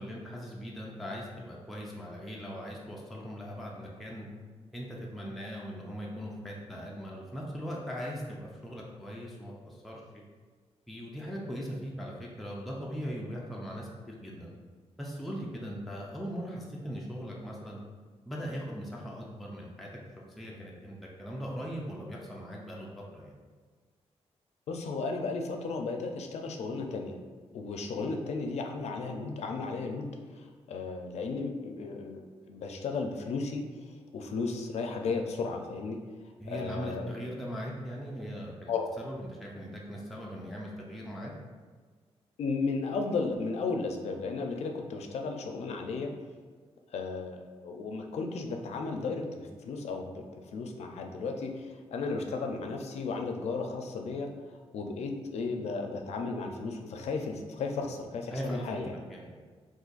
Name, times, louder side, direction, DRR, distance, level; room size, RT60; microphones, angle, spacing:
voice 1, 0.0-4.3 4.7-10.2 10.9-14.5 15.0-17.8 18.3-19.9 20.4-23.3 36.4-38.7 39.0-41.3 58.3-59.4, equal, ahead, -4 dB, 0.3 m, -39 dB
voice 2, 24.7-27.2 27.5-36.0 36.5-37.1 38.7-38.9 42.4-46.1 46.9-50.2 50.5-54.3 54.7-59.0, left 4 dB, 80° left, 3 dB, 0.4 m, -34 dB
2.5 x 2.4 x 3.8 m, 1.5 s
wide cardioid pair, 160°, 11 cm